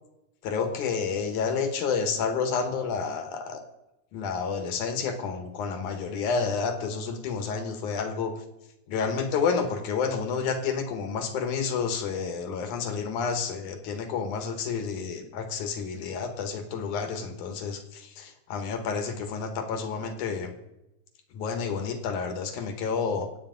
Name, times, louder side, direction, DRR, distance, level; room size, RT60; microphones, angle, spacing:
voice 1, 0.4-3.6 4.1-8.3 8.9-20.5 21.3-23.3, left 5 dB, 75° left, 6 dB, 2.8 m, -30 dB
24.5 x 8.5 x 3.9 m, 0.94 s
omnidirectional pair, 3.5 m